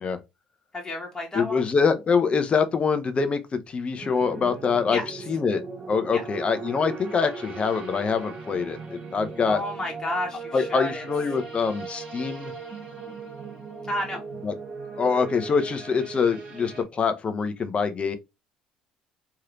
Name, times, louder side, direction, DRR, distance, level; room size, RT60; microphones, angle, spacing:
voice 1, 0.7-1.7 4.9-5.1 6.1-6.3 9.4-11.0 13.9-14.2, left 1 dB, 20° left, 1.1 m, -31 dB
voice 2, 1.3-5.0 5.3-5.6 5.9-9.6 10.5-12.5 14.4-14.5 15.0-18.2, left 5 dB, 35° left, 0.6 m, -24 dB
sound 1, 4.0-16.8, right 4 dB, 40° right, 1.5 m, -39 dB
3.2 x 2.8 x 2.5 m
hypercardioid pair, 55°, 3 cm